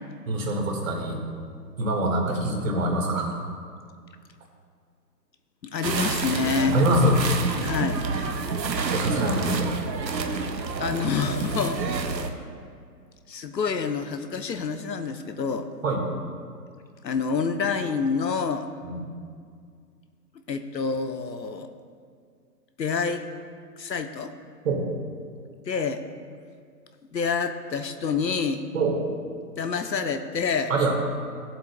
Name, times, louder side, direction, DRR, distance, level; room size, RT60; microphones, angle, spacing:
voice 1, 0.3-1.2 1.8-3.4 6.7-7.2 8.9-9.7 15.8-16.0 18.8-19.0 24.6-24.9 28.7-29.0 30.7-31.0, right 1 dB, 50° right, 1 dB, 1.8 m, -24 dB
voice 2, 5.6-6.8 7.6-8.0 10.2-10.3 10.8-12.1 13.3-15.7 17.0-18.7 20.5-21.7 22.8-23.2 23.8-24.3 25.7-26.0 27.1-28.6 29.6-30.7, left 5 dB, 85° left, 9 dB, 0.9 m, -27 dB
sound 1, 5.8-12.3, right 4 dB, 80° right, 1.0 m, -28 dB
16.0 x 7.6 x 2.2 m, 2.1 s
figure-of-eight pair, 140°, 50 cm